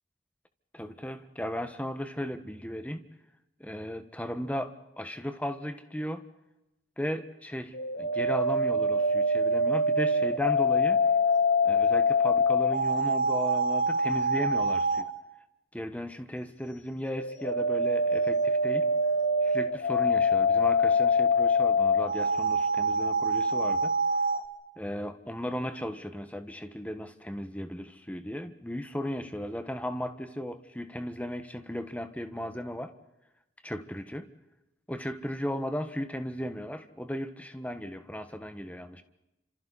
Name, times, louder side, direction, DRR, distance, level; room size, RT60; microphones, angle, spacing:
voice 1, 0.7-3.0 3.6-6.2 7.0-11.0 11.6-15.1 15.7-18.9 19.4-23.9 24.8-32.9 33.6-34.3 34.9-39.0, equal, 10° left, 8 dB, 1.5 m, -36 dB
sound 1, 7.7-15.1 17.1-24.4, left 1 dB, 65° left, 2.1 m, -25 dB
30.0 x 27.0 x 4.2 m, 0.93 s
head